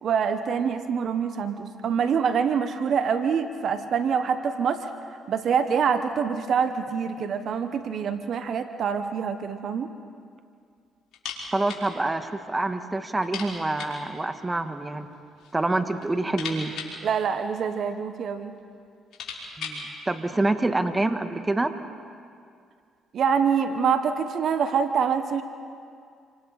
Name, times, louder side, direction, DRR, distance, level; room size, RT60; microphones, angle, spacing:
voice 1, 0.0-4.9 5.3-9.9 17.0-18.5 23.1-25.4, right 6 dB, 60° right, 9 dB, 1.1 m, -25 dB
sound 1, 11.1-11.9 12.2-12.3 12.6-12.7 13.2-14.1 15.0-15.6 15.9-17.9 18.6-18.7 18.9-19.9, left 5 dB, 70° left, 4.7 m, -38 dB
voice 2, 11.5-15.1 15.5-16.7 19.6-21.7, right 2 dB, 20° right, 8 dB, 1.5 m, -26 dB
28.0 x 25.0 x 4.1 m, 2.3 s
supercardioid pair, 60°, 0 cm